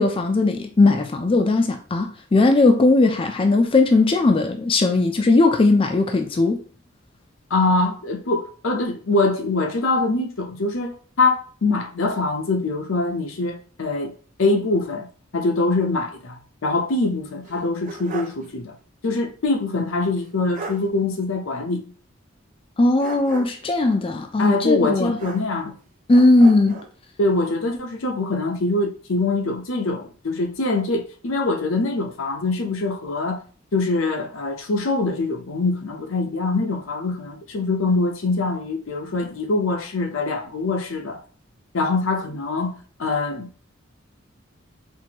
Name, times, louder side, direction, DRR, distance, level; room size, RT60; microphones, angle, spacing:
voice 1, 0.0-6.6 22.8-25.1 26.1-26.8, left 2 dB, 25° left, 0.4 m, -18 dB
voice 2, 7.5-14.1 14.4-15.1 15.3-18.7 19.0-21.8 24.4-25.7 27.2-33.4 33.7-41.2 41.7-43.7, left 3 dB, 75° left, 0.7 m, -24 dB
sound 1, 17.4-18.5 18.8-18.9 20.2-20.3 20.5-20.9 23.0-23.7 25.2-25.8 26.1-26.9, right 4 dB, 40° right, 0.6 m, -36 dB
4.5 x 2.6 x 2.9 m
head